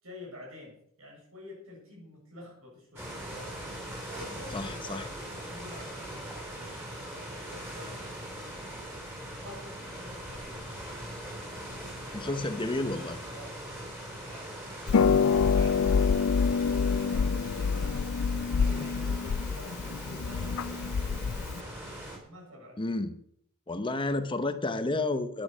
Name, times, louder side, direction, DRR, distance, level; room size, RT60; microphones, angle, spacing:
voice 1, 0.0-11.2 11.5-12.5 13.2-16.5 16.9-21.6 22.0-22.8, left 1 dB, 85° right, -1 dB, 7.2 m, -49 dB
sound 1, 3.0-22.2, right 1 dB, 10° right, 3.9 m, -41 dB
voice 2, 4.5-5.1 12.1-13.2 22.8-23.2 23.7-25.4, left 2 dB, 25° left, 10 dB, 0.8 m, -31 dB
Harp, 14.9-21.6, left 5 dB, 80° left, 0.4 m, -26 dB
11.0 x 10.5 x 6.2 m, 0.65 s
head